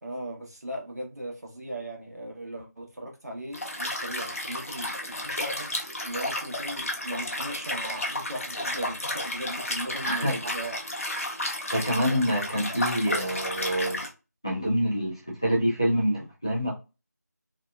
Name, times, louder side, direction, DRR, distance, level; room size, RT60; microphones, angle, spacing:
voice 1, 0.0-10.8, right 1 dB, 65° right, 1.0 m, -38 dB
Liquid, 3.5-14.1, left 1 dB, 50° left, 0.7 m, -32 dB
voice 2, 10.0-10.4 11.2-11.3 11.7-14.0 14.4-16.7, equal, 15° left, 0.4 m, -26 dB
2.8 x 2.0 x 2.3 m
figure-of-eight pair, 170°, 9 cm